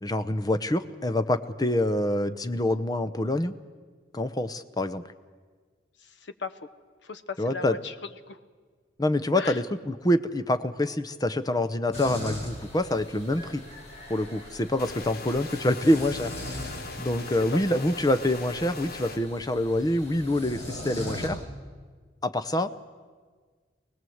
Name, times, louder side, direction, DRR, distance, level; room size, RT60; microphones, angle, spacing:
voice 1, 0.0-3.5 4.1-5.0 7.4-7.7 9.0-13.6 14.1-21.4 22.2-22.7, left 1 dB, 20° left, 11 dB, 0.8 m, -26 dB
voice 2, 6.0-6.6 7.0-8.4 9.3-9.6 17.3-17.8, left 4 dB, 80° left, 12 dB, 1.1 m, -38 dB
sound 1, 11.9-21.3, left 1 dB, 40° left, 6.5 m, -40 dB
sound 2, 14.8-19.2, left 3 dB, 55° left, 1.4 m, -40 dB
25.0 x 18.5 x 7.9 m, 1.5 s
head